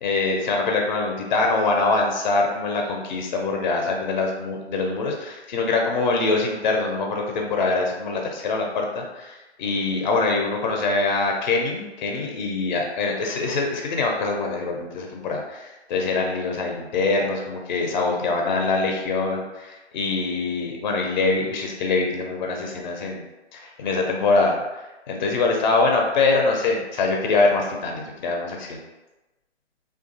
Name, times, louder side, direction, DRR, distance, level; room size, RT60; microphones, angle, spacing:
voice 1, 0.0-23.2 23.5-28.8, left 3 dB, 40° left, 1 dB, 0.5 m, -24 dB
2.9 x 2.3 x 2.6 m, 1.1 s
hypercardioid pair, 140°, 34 cm